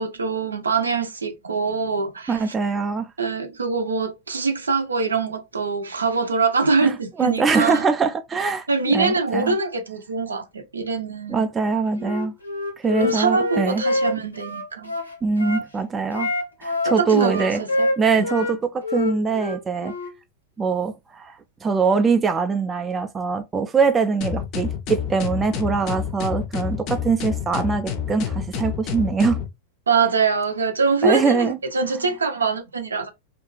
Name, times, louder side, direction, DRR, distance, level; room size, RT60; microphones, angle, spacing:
voice 1, 0.0-2.4 3.2-7.9 8.7-11.4 13.0-14.9 16.8-17.9 18.2-18.3 29.9-33.1, right 4 dB, 75° right, 0.6 m, -23 dB
voice 2, 2.3-3.1 6.8-9.6 11.3-12.3 12.8-13.8 15.2-16.3 16.6-17.6 18.0-19.9 20.6-29.4 31.0-31.6, right 5 dB, 20° right, 0.3 m, -23 dB
Wind instrument woodwind instrument, 12.0-15.7 16.1-18.6 18.8-20.1, left 2 dB, 85° left, 0.7 m, -26 dB
sound 1, 24.2-29.5, left 8 dB, 40° left, 0.5 m, -28 dB
2.5 x 2.3 x 3.0 m
figure-of-eight pair, 90°, 0 cm